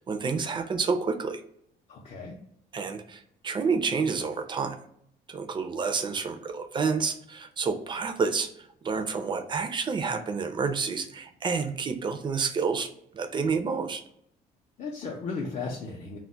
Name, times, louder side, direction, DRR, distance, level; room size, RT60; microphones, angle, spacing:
voice 1, 0.0-1.4 2.7-4.8 5.3-14.0, right 5 dB, 30° right, 7 dB, 0.4 m, -29 dB
voice 2, 1.9-2.4 14.8-16.2, left 4 dB, 40° left, -2 dB, 0.5 m, -35 dB
2.2 x 2.0 x 3.8 m, 0.72 s
cardioid pair, 110°, 17 cm